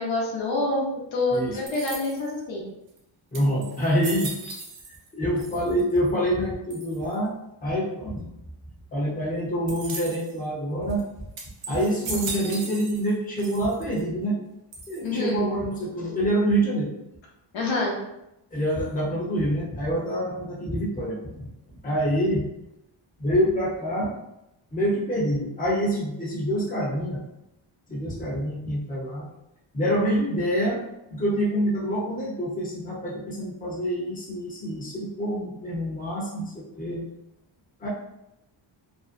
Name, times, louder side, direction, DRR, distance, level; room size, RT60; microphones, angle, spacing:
voice 1, 0.0-2.6 15.0-15.4 17.5-17.9, left 2 dB, 70° left, -3 dB, 0.8 m, -27 dB
sound 1, 1.7-2.4 3.0-3.1 3.3-5.1 5.4-6.0 6.7-7.2 9.7-10.4 10.9-11.0 11.4-13.1 13.4-14.0 14.7-15.3, right 3 dB, 80° right, 0.7 m, -37 dB
voice 2, 3.3-4.3 4.9-7.3 7.6-8.3 8.9-11.0 11.7-14.4 14.9-16.9 18.5-21.5 21.8-22.5 23.2-24.1 24.7-27.2 27.9-29.3 29.7-30.8 31.1-37.1 37.8-37.9, equal, 15° left, -4 dB, 0.8 m, -26 dB
2.6 x 2.1 x 2.5 m, 0.86 s
cardioid pair, 85°, 47 cm